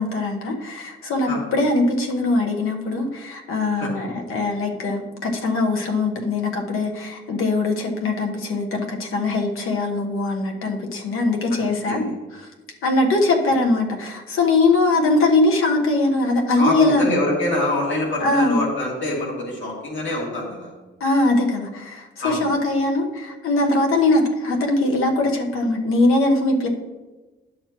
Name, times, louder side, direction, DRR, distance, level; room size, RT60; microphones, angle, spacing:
voice 1, 0.0-12.5 12.8-17.2 18.2-18.6 21.0-26.7, left 2 dB, 90° left, 2 dB, 1.2 m, -21 dB
voice 2, 16.6-20.7 22.2-22.4, left 2 dB, 65° left, -2 dB, 2.2 m, -25 dB
10.5 x 6.4 x 3.0 m, 1.2 s
wide cardioid pair, 165°, 21 cm